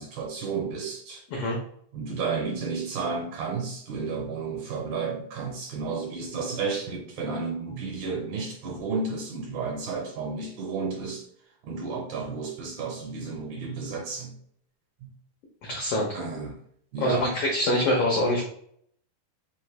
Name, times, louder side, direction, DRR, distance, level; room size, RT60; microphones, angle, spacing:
voice 1, 0.0-1.2 1.9-11.3 11.6-14.3 15.0-15.1 16.1-16.6 16.9-17.4, right 4 dB, 70° right, 2.1 m, -32 dB
voice 2, 15.6-16.1 17.0-18.4, left 1 dB, 80° left, 1.3 m, -24 dB
5.0 x 2.7 x 3.2 m
omnidirectional pair, 3.8 m